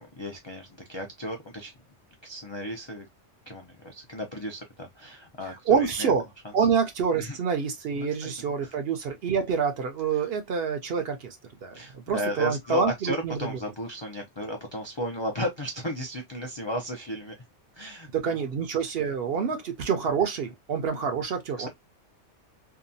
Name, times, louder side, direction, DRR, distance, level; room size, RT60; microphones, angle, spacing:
voice 1, 0.0-1.7 2.2-3.1 3.5-6.1 6.6-6.7 7.1-7.4 8.0-8.7 10.1-10.3 10.9-11.0 11.7-17.3 17.7-18.4 19.3-19.5 21.6-21.7, equal, 50° left, 0.3 m, -35 dB
voice 2, 5.7-6.2 6.5-11.4 11.6-11.8 12.1-13.4 18.1-21.7, right 6 dB, 60° right, 0.7 m, -27 dB
2.8 x 2.3 x 2.5 m
omnidirectional pair, 1.3 m